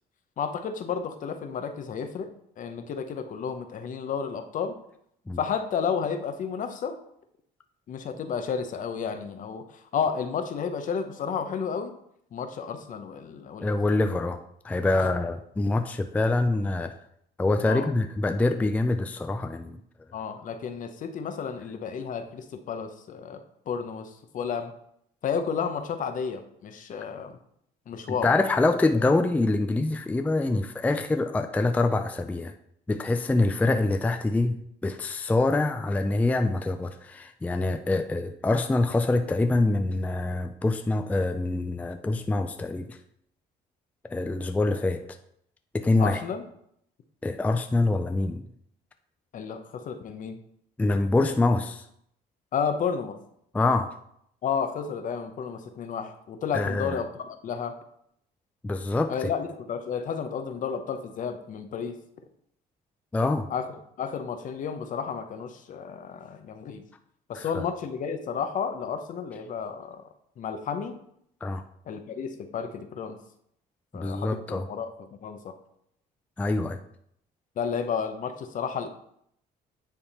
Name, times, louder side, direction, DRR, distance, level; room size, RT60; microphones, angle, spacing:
voice 1, 0.4-4.7 5.4-7.0 7.9-11.9 12.3-13.7 17.7-17.9 20.1-24.7 25.2-27.4 27.9-28.3 46.0-46.4 49.3-50.4 52.5-53.2 54.4-57.8 59.1-62.0 63.5-63.7 64.0-66.8 67.3-70.0 70.4-71.0 71.9-73.2 73.9-75.5 77.6-78.9, left 6 dB, 50° left, 8 dB, 0.8 m, -32 dB
voice 2, 13.6-14.4 14.6-16.9 17.4-19.8 28.1-32.5 32.9-43.0 44.1-45.2 45.7-46.2 47.2-48.4 50.8-51.8 53.5-53.9 56.5-57.0 58.6-59.3 63.1-63.5 67.3-67.6 71.4-71.6 73.9-74.7 76.4-76.8, left 2 dB, 10° left, 7 dB, 0.4 m, -25 dB
9.4 x 3.5 x 4.2 m, 0.72 s
cardioid pair, 110°, 17 cm